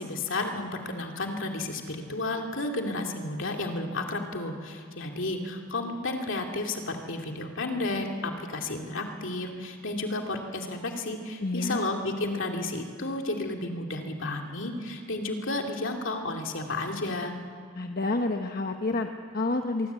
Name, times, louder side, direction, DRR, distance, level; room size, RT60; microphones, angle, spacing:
voice 1, 0.0-17.3, left 2 dB, 60° left, 2 dB, 2.7 m, -32 dB
voice 2, 11.4-11.8 17.7-19.9, left 2 dB, 45° left, 5 dB, 1.1 m, -29 dB
24.0 x 23.0 x 8.3 m, 2.2 s
head